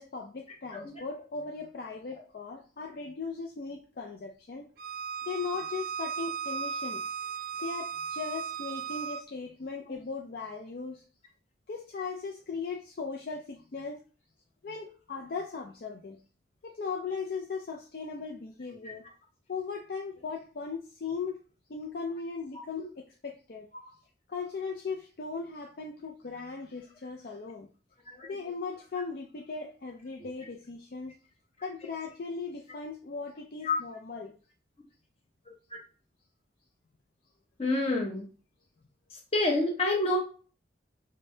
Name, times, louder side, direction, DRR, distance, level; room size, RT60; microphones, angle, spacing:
voice 1, 0.0-4.7 5.2-7.0 7.6-11.0 11.7-14.0 14.6-16.2 16.6-19.1 19.5-21.4 21.7-23.7 24.3-27.7 28.2-31.1 31.6-34.3, left 4 dB, 55° left, 0 dB, 0.4 m, -38 dB
Bowed string instrument, 4.8-9.2, right 7 dB, 55° right, 0.3 m, -36 dB
voice 2, 37.6-38.3 39.3-40.2, left 2 dB, 35° left, 0 dB, 0.9 m, -28 dB
5.1 x 2.1 x 2.7 m, 0.37 s
head